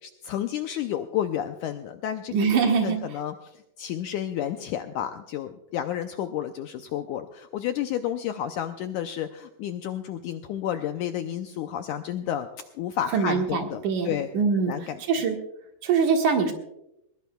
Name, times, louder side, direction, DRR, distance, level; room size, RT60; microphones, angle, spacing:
voice 1, 0.0-14.3 14.6-15.0, left 10 dB, 85° left, 7 dB, 1.8 m, -31 dB
voice 2, 2.3-3.0 13.1-14.7 15.1-15.4 15.8-16.5, right 5 dB, 65° right, 3 dB, 2.8 m, -23 dB
20.5 x 20.5 x 2.3 m, 0.86 s
omnidirectional pair, 4.2 m